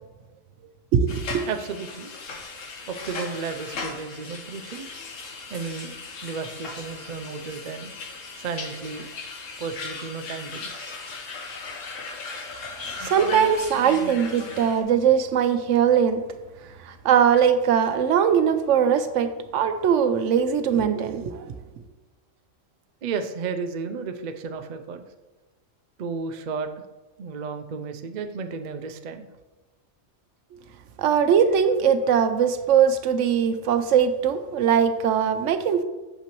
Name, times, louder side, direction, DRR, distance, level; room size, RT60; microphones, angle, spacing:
voice 1, 0.9-1.4 13.0-16.2 16.9-21.4 31.0-35.8, right 8 dB, 75° right, 10 dB, 0.9 m, -21 dB
sound 1, 1.1-14.8, left 3 dB, 75° left, 1.4 m, -37 dB
voice 2, 1.5-2.1 2.9-4.9 5.5-6.0 6.2-7.9 8.4-11.0 23.0-25.0 26.0-26.8 27.2-29.3, right 5 dB, 55° right, 7 dB, 0.5 m, -33 dB
8.5 x 6.8 x 3.0 m, 1.2 s
omnidirectional pair, 1.3 m